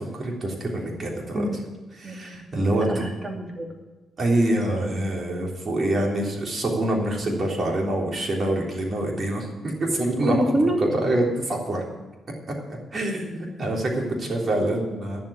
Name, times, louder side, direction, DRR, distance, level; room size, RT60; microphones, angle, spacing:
voice 1, 0.1-1.6 2.0-3.0 4.2-10.4 10.8-11.8 12.5-15.2, right 1 dB, 45° right, -1 dB, 3.4 m, -26 dB
voice 2, 1.3-1.6 2.0-2.4 2.7-3.7 4.7-4.9 10.2-10.8 11.2-11.3, right 1 dB, 25° right, 1 dB, 2.7 m, -26 dB
10.5 x 7.6 x 8.8 m, 1.2 s
cardioid pair, 85°, 0 cm